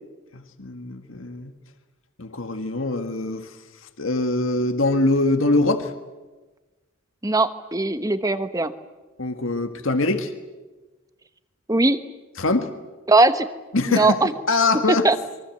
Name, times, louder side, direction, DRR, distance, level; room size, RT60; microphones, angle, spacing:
voice 1, 0.3-1.5 2.2-3.5 4.0-5.9 9.2-10.3 12.4-12.7 13.7-14.2 14.5-15.1, left 2 dB, 75° left, 7 dB, 1.8 m, -23 dB
voice 2, 7.2-8.7 11.7-12.0 13.1-13.5 13.9-14.3 14.9-15.2, right 2 dB, 15° right, 10 dB, 1.1 m, -19 dB
27.0 x 23.5 x 7.9 m, 1.2 s
head